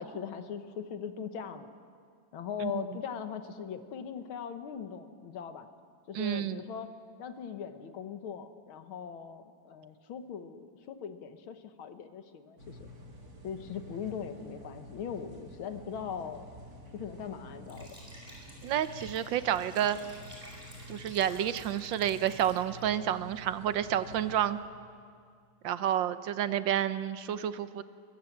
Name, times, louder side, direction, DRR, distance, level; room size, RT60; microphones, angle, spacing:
voice 1, 0.0-1.7 2.3-5.7 6.1-6.9 7.2-12.8 13.4-16.5 16.9-18.0, left 7 dB, 85° left, 9 dB, 2.1 m, -40 dB
voice 2, 6.1-6.6 18.6-20.0 20.9-24.6 25.6-27.8, right 10 dB, 70° right, 13 dB, 1.4 m, -30 dB
sound 1, 12.6-24.5, equal, 45° right, 3.0 m, -49 dB
Liquid, 17.6-23.1, equal, 15° right, 5.2 m, -52 dB
22.0 x 22.0 x 7.3 m, 2.2 s
omnidirectional pair, 2.2 m